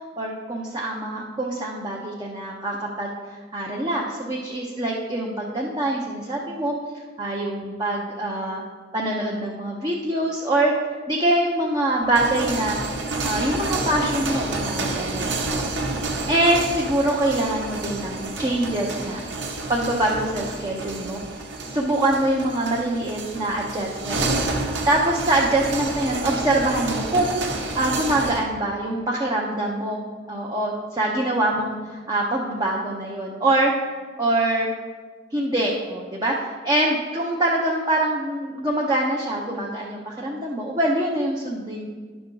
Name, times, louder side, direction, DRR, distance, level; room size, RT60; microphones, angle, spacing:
voice 1, 0.2-3.1 3.5-6.8 7.2-8.6 8.9-10.7 11.1-12.8 13.2-15.8 16.3-19.2 19.7-21.2 21.7-24.2 24.9-30.0 30.3-33.7 34.2-34.7 35.3-36.3 36.6-41.9, right 1 dB, 20° right, -3 dB, 0.7 m, -24 dB
sound 1, 12.0-28.4, right 2 dB, 65° right, 1.1 m, -29 dB
10.5 x 6.0 x 3.9 m, 1.5 s
head